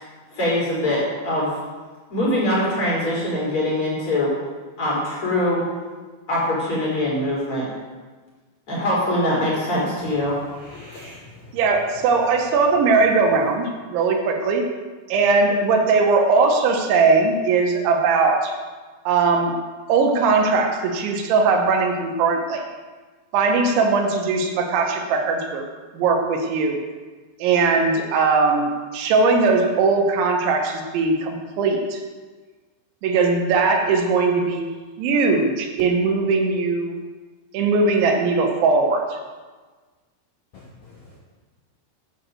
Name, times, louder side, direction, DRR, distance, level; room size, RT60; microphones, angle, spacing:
voice 1, 0.3-1.6 2.1-4.3 4.8-5.6 6.3-7.7 8.7-10.4, left 1 dB, 30° left, -6 dB, 4.6 m, -23 dB
voice 2, 10.5-11.6 40.5-41.2, left 2 dB, 80° left, -3 dB, 1.6 m, -43 dB
voice 3, 11.5-14.7 15.1-18.5 19.1-19.6 19.9-22.6 23.3-25.7 25.9-26.8 27.4-32.0 33.0-34.7 35.0-37.0 37.5-39.2, right 4 dB, 80° right, 3 dB, 3.4 m, -19 dB
10.0 x 7.5 x 7.5 m, 1.4 s
omnidirectional pair, 5.4 m